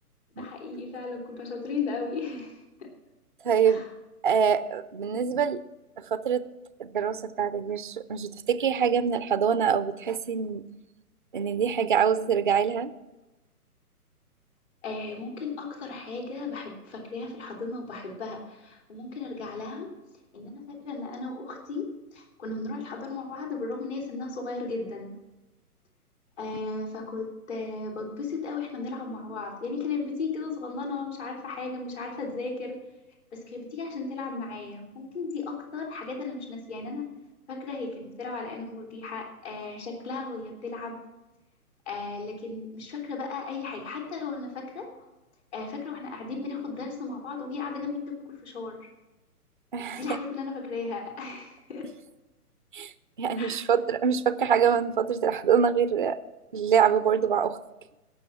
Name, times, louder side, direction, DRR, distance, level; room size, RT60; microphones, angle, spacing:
voice 1, 0.4-2.9 3.6-3.9 14.8-19.9 20.3-25.1 26.4-32.8 33.3-37.1 37.5-41.0 41.9-44.9 45.5-48.9 49.9-51.9 53.4-53.6, left 4 dB, 45° left, 0 dB, 3.2 m, -35 dB
voice 2, 3.4-3.8 4.2-5.6 6.0-6.4 6.8-10.6 11.3-12.9 49.7-50.0 52.7-52.9 53.2-56.2 56.5-57.6, right 7 dB, 35° right, 14 dB, 0.4 m, -25 dB
16.5 x 6.2 x 5.8 m, 1.0 s
figure-of-eight pair, 130°, 46 cm